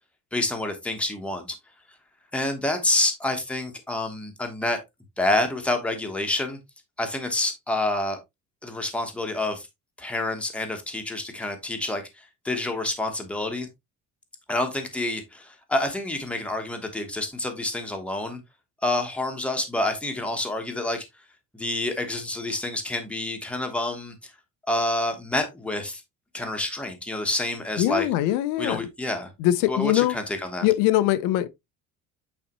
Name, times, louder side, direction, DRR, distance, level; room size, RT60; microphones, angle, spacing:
voice 1, 0.3-1.6 2.3-4.8 5.2-6.6 7.0-8.2 8.6-9.7 10.0-13.7 14.5-18.4 18.8-21.0 21.5-24.3 24.7-26.0 26.3-28.1 28.6-29.3 29.6-30.7, left 2 dB, 5° left, 1.1 m, -28 dB
voice 2, 27.8-28.9 29.4-30.1 30.6-31.5, left 14 dB, 80° left, 0.8 m, -22 dB
8.4 x 4.2 x 3.0 m
cardioid pair, 170°, 31 cm